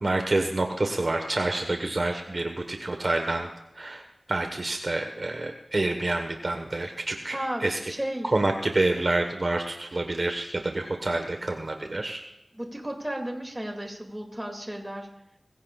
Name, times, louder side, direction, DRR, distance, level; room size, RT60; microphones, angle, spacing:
voice 1, 0.0-3.5 3.7-4.0 4.3-7.8 8.3-12.2, right 2 dB, 50° right, 4 dB, 1.3 m, -27 dB
voice 2, 7.3-8.3 12.5-15.1, right 1 dB, 15° right, 2 dB, 2.5 m, -34 dB
22.5 x 15.5 x 2.4 m, 0.85 s
wide cardioid pair, 80°, 0 cm